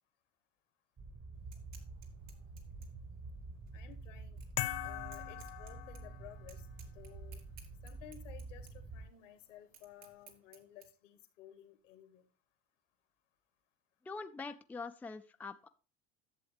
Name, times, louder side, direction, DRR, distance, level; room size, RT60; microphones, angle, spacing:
sound 1, 1.0-9.1, right 3 dB, 30° right, 1.1 m, -48 dB
sound 2, 1.3-10.9, right 7 dB, 75° right, 2.2 m, -62 dB
voice 1, 3.7-4.4 4.8-7.4 7.8-12.3, left 11 dB, 85° left, 7 dB, 1.6 m, -56 dB
sound 3, 4.6-6.5, left 15 dB, 60° left, 0.8 m, -40 dB
voice 2, 14.1-15.7, left 4 dB, 5° left, 8 dB, 0.4 m, -44 dB
11.0 x 7.0 x 3.3 m, 0.36 s
hypercardioid pair, 90°, 36 cm